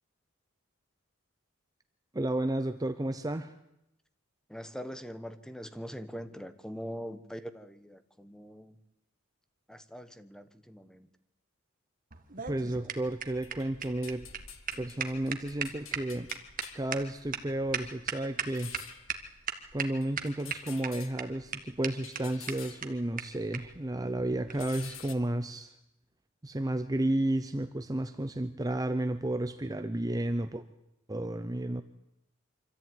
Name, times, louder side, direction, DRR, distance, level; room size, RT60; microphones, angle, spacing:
voice 1, 2.1-3.5 12.5-14.3 14.7-16.3 16.7-18.7 19.7-25.8 26.4-30.6 31.1-31.8, right 1 dB, 20° right, 9 dB, 0.7 m, -32 dB
voice 2, 4.5-8.8 9.7-11.1, equal, 5° left, 11 dB, 1.2 m, -42 dB
sound 1, 12.1-18.8 19.1-19.2 19.5-19.9 20.2-20.9 21.2-21.3 21.5-21.6 21.8-21.9 22.2-22.3 22.5-22.6 22.8-22.9 23.2-23.3 23.5-23.6 24.5-24.6, right 7 dB, 45° right, 1.7 m, -35 dB
sound 2, 13.1-23.9 24.2-25.1, left 8 dB, 70° left, 1.7 m, -50 dB
25.0 x 14.0 x 9.3 m, 0.89 s
head